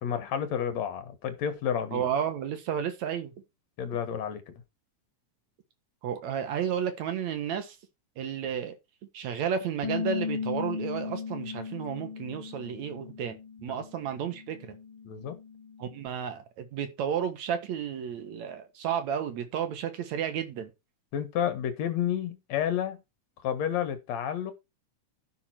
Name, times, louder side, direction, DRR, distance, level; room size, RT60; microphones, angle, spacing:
voice 1, 0.0-2.1 3.8-4.5 13.7-13.8 15.1-15.4 21.1-23.0 23.4-24.5, left 9 dB, 65° left, 2.5 m, -30 dB
voice 2, 1.9-3.3 6.0-7.8 8.2-8.8 9.1-14.8 15.8-20.7, right 8 dB, 65° right, 2.7 m, -32 dB
Bass guitar, 9.8-16.1, left 6 dB, 45° left, 2.1 m, -37 dB
12.5 x 5.8 x 4.4 m
omnidirectional pair, 3.6 m